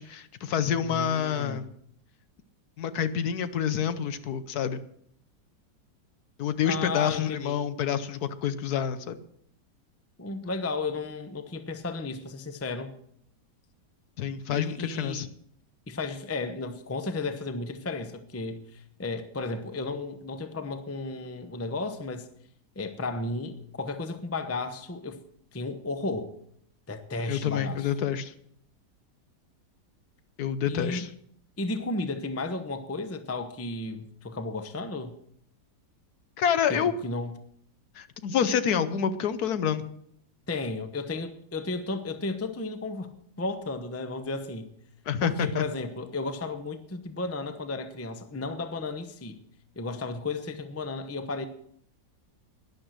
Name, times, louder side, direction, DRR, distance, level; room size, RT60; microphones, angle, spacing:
voice 1, 0.0-1.7 2.8-4.8 6.4-9.2 14.2-15.3 27.3-28.3 30.4-31.1 36.4-36.9 38.0-39.8 45.1-45.6, left 8 dB, 65° left, 1.2 m, -28 dB
voice 2, 0.8-1.6 6.6-7.7 10.2-12.9 14.5-15.3 15.9-22.3 22.8-25.2 25.5-26.3 26.9-27.9 30.7-31.1 31.6-35.2 36.7-37.3 40.5-44.7 45.2-49.4 49.8-51.5, left 3 dB, 15° left, 0.5 m, -34 dB
12.0 x 10.5 x 6.5 m
omnidirectional pair, 1.9 m